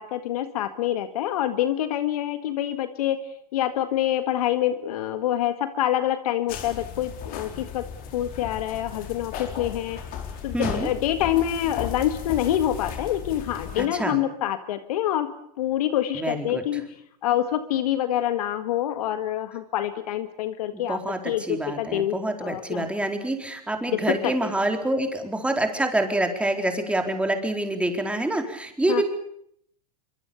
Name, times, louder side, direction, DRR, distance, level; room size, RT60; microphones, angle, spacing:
voice 1, 0.0-3.2 3.5-7.8 8.1-10.0 10.4-15.3 15.6-16.8 17.2-21.0 21.3-22.2 22.4-22.8 23.9-24.5 28.9-29.0, left 12 dB, 65° left, 10 dB, 1.8 m, -26 dB
sound 1, 6.5-13.9, left 7 dB, 45° left, 4.4 m, -36 dB
voice 2, 10.5-10.9 13.8-14.2 16.1-16.8 20.7-29.0, right 1 dB, 5° right, 4 dB, 4.1 m, -26 dB
25.0 x 24.0 x 7.0 m, 0.70 s
hypercardioid pair, 105°, 20 cm